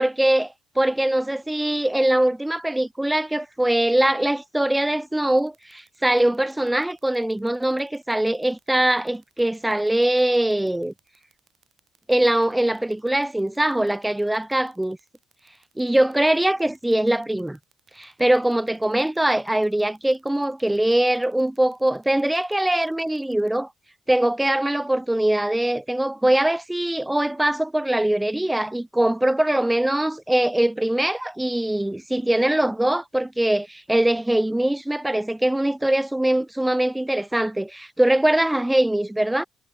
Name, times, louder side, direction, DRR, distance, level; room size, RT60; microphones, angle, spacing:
voice 1, 0.0-10.9 12.1-15.0 15.8-17.6 18.0-23.7 24.1-39.4, right 1 dB, 10° right, 0.4 m, -22 dB
sound 1, 5.3-23.6, right 9 dB, 60° right, 6.4 m, -62 dB
cardioid pair, 90°, 0 cm